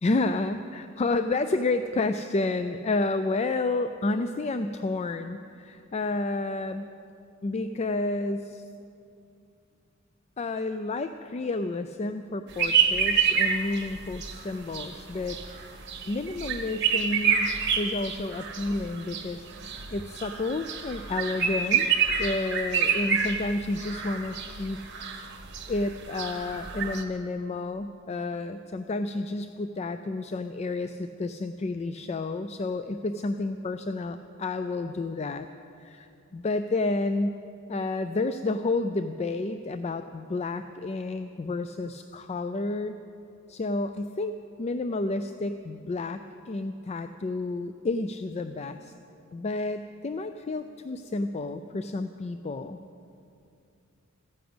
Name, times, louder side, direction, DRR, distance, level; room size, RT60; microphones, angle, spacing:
voice 1, 0.0-6.9 7.4-8.6 10.4-15.4 16.1-21.9 22.2-24.8 25.7-35.5 35.8-37.4 37.7-43.0 43.5-48.9 49.3-52.8, left 2 dB, 30° left, 10 dB, 0.4 m, -30 dB
sound 1, 12.5-27.0, right 6 dB, 60° right, 1.3 m, -28 dB
14.0 x 10.0 x 7.9 m, 2.6 s
head